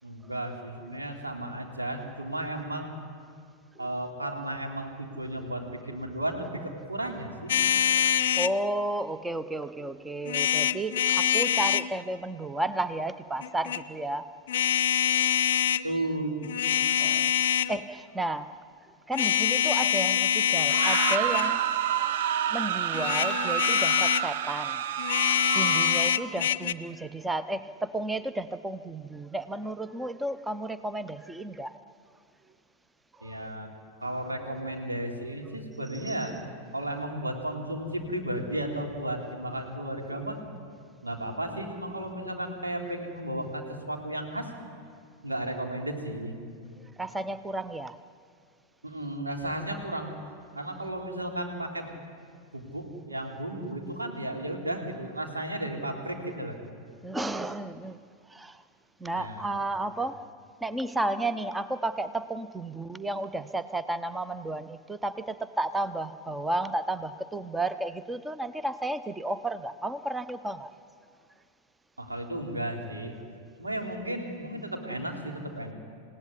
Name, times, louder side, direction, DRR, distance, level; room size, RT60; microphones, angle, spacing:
voice 1, 0.0-2.9 3.8-7.5 15.8-16.4 33.2-33.7 34.0-36.3 36.7-40.4 41.0-44.5 45.2-46.3 48.8-50.2 50.5-51.9 52.5-56.5 59.1-59.4 60.0-60.1 72.0-73.1 73.6-75.7, right 1 dB, 80° right, 2 dB, 3.8 m, -34 dB
sound 1, 7.5-8.6 10.3-11.9 13.4-13.8 14.5-15.8 16.4-17.8 19.1-21.6 22.9-24.3 25.0-26.7, left 10 dB, 60° left, 0.7 m, -25 dB
voice 2, 8.4-14.3 14.7-14.8 16.9-18.6 19.1-21.6 22.5-24.8 25.5-31.8 33.2-33.5 36.1-36.2 47.0-48.0 57.0-58.0 58.3-58.6 59.0-60.2 60.6-70.7, right 2 dB, 10° right, 13 dB, 0.8 m, -32 dB
sound 2, 20.6-26.4, right 10 dB, 55° right, 0.9 m, -29 dB
28.0 x 17.5 x 9.9 m, 2.2 s
figure-of-eight pair, 90°, 0 cm